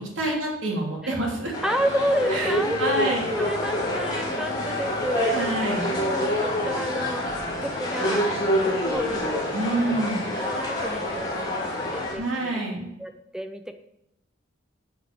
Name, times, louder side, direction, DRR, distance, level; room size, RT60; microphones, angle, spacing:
voice 1, 0.0-1.5 2.3-3.3 5.3-6.0 9.5-10.2 12.2-12.9, right 1 dB, 70° right, -1 dB, 3.0 m, -27 dB
sound 1, 1.5-12.1, left 1 dB, 20° left, 2.4 m, -27 dB
voice 2, 1.6-5.5 5.9-7.3 7.6-9.5 10.4-12.6 13.0-13.7, equal, 5° right, 7 dB, 0.6 m, -31 dB
8.2 x 6.8 x 6.7 m, 0.86 s
head